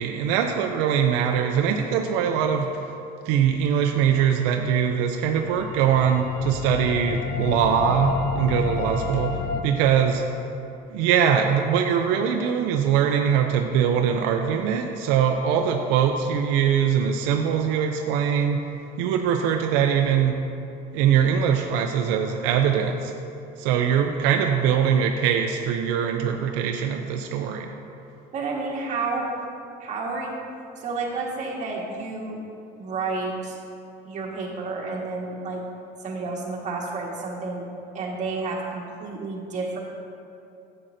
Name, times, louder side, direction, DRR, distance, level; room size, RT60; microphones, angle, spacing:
voice 1, 0.0-2.9 3.3-10.2 10.9-18.6 19.0-20.4 20.9-23.1 23.6-27.7, right 8 dB, 85° right, 4 dB, 0.5 m, -22 dB
sound 1, 5.3-9.6, left 6 dB, 60° left, 0.6 m, -30 dB
voice 2, 28.3-29.3 29.8-30.4 30.8-32.4 32.8-33.6 34.0-35.6 36.0-37.7 37.9-39.8, right 3 dB, 45° right, -3 dB, 1.5 m, -30 dB
9.7 x 7.5 x 2.6 m, 2.7 s
cardioid pair, 125°, 18 cm